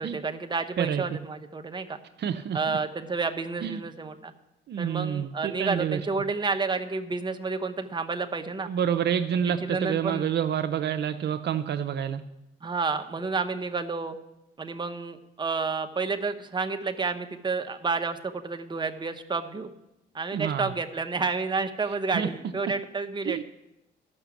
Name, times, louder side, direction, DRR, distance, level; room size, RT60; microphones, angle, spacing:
voice 1, 0.0-2.0 2.5-4.3 4.8-8.7 9.5-10.3 12.6-14.2 14.6-19.7 20.1-23.4, right 4 dB, 25° right, 6 dB, 0.9 m, -30 dB
voice 2, 2.2-2.8 3.6-3.8 4.7-6.0 8.7-12.2 20.3-20.7 22.1-22.3 23.3-23.4, right 8 dB, 60° right, 8 dB, 0.6 m, -28 dB
13.0 x 5.9 x 7.1 m, 0.90 s
cardioid pair, 90°, 20 cm